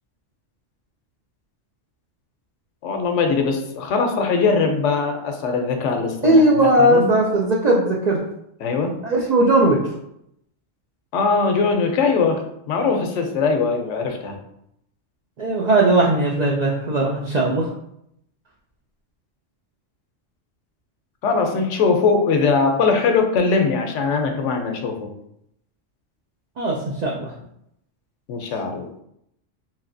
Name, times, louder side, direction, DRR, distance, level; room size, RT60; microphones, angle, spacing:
voice 1, 2.8-7.1 8.6-8.9 11.1-12.4 12.7-14.4 21.2-25.1 28.3-28.9, left 4 dB, 75° left, 4 dB, 0.9 m, -21 dB
voice 2, 6.2-8.2 9.0-9.8 15.4-17.7 26.6-27.3, right 1 dB, 90° right, -3 dB, 0.3 m, -18 dB
3.1 x 2.7 x 2.5 m, 0.75 s
omnidirectional pair, 1.3 m